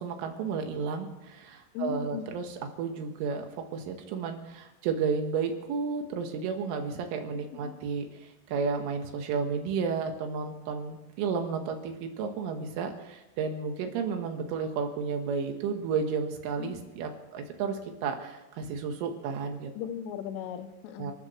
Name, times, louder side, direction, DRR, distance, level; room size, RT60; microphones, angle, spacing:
voice 1, 0.0-2.5 2.8-19.7 21.0-21.1, right 5 dB, 85° right, 5 dB, 4.1 m, -32 dB
voice 2, 1.8-2.3 7.3-7.8 16.6-16.8 19.8-21.1, left 8 dB, 85° left, 8 dB, 3.5 m, -37 dB
29.5 x 12.5 x 3.4 m, 0.98 s
omnidirectional pair, 5.7 m